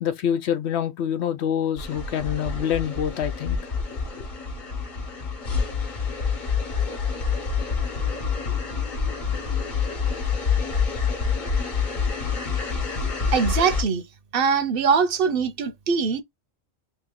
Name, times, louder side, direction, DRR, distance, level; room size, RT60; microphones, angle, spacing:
voice 1, 0.0-3.6, left 9 dB, 80° left, 1.0 m, -26 dB
sound 1, 1.8-13.8, left 5 dB, 50° left, 1.0 m, -27 dB
voice 2, 13.3-14.0 14.3-16.2, right 5 dB, 65° right, 0.8 m, -22 dB
2.9 x 2.9 x 3.6 m
omnidirectional pair, 1.1 m